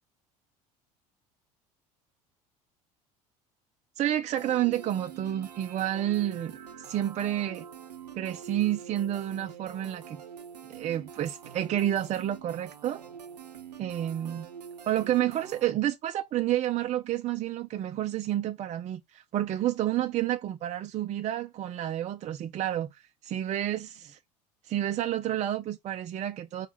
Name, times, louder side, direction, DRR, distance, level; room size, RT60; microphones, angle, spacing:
voice 1, 4.0-6.5 6.8-7.7 8.1-10.2 10.7-13.0 13.8-14.5 14.9-22.9 23.2-24.2 24.7-26.7, right 12 dB, 35° right, 0.5 m, -30 dB
sound 1, 4.4-15.7, right 7 dB, 85° right, 0.6 m, -45 dB
4.5 x 2.4 x 4.1 m
figure-of-eight pair, 65°, 20 cm